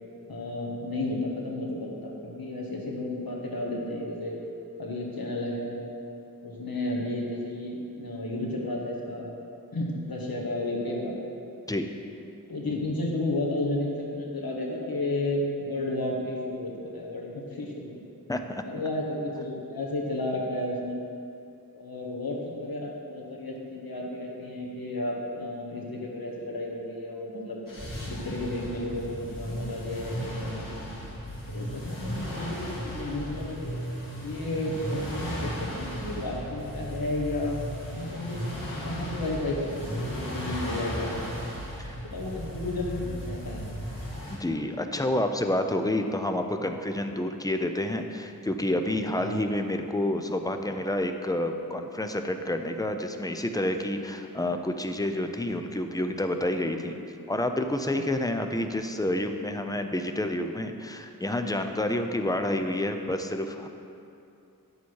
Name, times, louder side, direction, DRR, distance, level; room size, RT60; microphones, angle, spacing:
voice 1, 0.3-4.4 4.8-5.8 6.4-9.3 9.7-11.1 12.5-17.9 18.6-21.0 21.7-27.6 28.1-30.9 31.5-33.7 34.2-37.6 37.9-38.4 38.8-41.1 42.0-43.7 49.2-49.4, left 1 dB, 90° left, -1 dB, 1.4 m, -32 dB
voice 2, 18.3-18.6 41.8-41.9 44.4-57.0 57.3-63.7, left 1 dB, 10° left, 6 dB, 0.6 m, -29 dB
sound 1, 27.7-44.4, equal, 65° left, 2.3 m, -36 dB
10.0 x 7.0 x 4.7 m, 2.7 s
wide cardioid pair, 60°, 35 cm